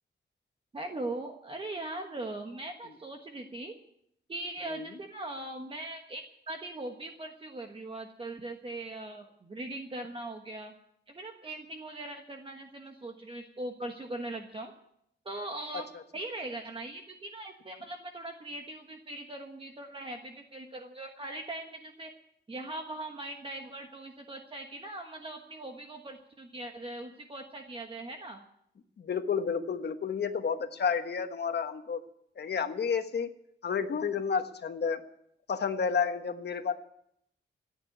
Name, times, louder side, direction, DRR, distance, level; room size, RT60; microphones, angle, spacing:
voice 1, 0.7-3.7 4.3-10.7 11.1-14.7 15.2-15.9 16.1-22.1 22.5-28.4, right 2 dB, 30° right, 3 dB, 1.3 m, -40 dB
voice 2, 29.0-32.0 32.4-33.3 33.6-35.0 35.5-36.7, left 6 dB, 60° left, 7 dB, 1.3 m, -31 dB
14.5 x 9.3 x 9.5 m, 0.74 s
wide cardioid pair, 155°, 19 cm